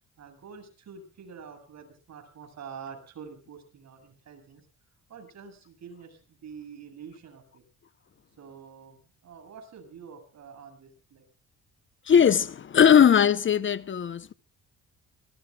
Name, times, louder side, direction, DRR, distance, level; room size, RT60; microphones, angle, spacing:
voice 1, 0.2-4.7 5.1-7.6 8.4-11.2, right 6 dB, 60° right, 7.9 m, -46 dB
voice 2, 12.1-14.3, left 8 dB, 40° left, 0.8 m, -19 dB
26.5 x 19.5 x 2.3 m
cardioid pair, 90°, 30 cm